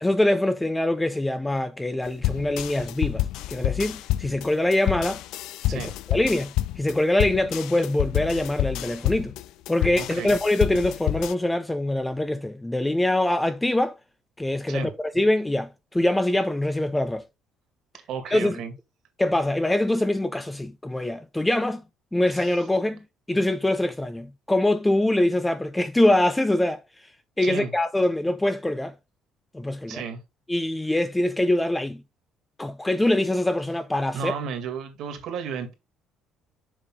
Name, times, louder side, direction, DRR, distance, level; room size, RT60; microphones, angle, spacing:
voice 1, 0.0-5.2 5.7-9.3 9.7-13.9 14.4-14.9 15.1-17.2 18.3-18.6 19.2-21.8 22.1-23.0 23.3-26.8 27.4-28.9 29.5-30.0 30.5-32.0 32.6-34.3, left 1 dB, 5° left, 0.5 m, -24 dB
sound 1, 2.2-11.3, left 15 dB, 75° left, 0.4 m, -28 dB
voice 2, 10.0-10.3 14.7-14.9 18.1-18.7 22.3-22.5 27.4-27.7 29.9-30.2 34.1-35.7, right 6 dB, 60° right, 2.0 m, -33 dB
7.0 x 5.1 x 3.8 m
cardioid pair, 165°, 0 cm